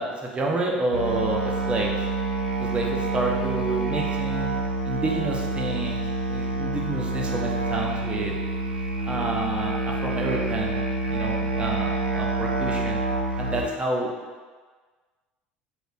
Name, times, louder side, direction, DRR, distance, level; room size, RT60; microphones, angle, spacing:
voice 1, 0.0-1.9 2.6-4.6 4.8-6.0 6.3-8.4 9.1-10.8 11.1-13.0 13.4-14.1, right 2 dB, 20° right, -1 dB, 0.7 m, -29 dB
Musical instrument, 0.9-13.6, right 3 dB, 85° right, 0.4 m, -27 dB
4.0 x 3.7 x 2.4 m, 1.4 s
figure-of-eight pair, 65°, 5 cm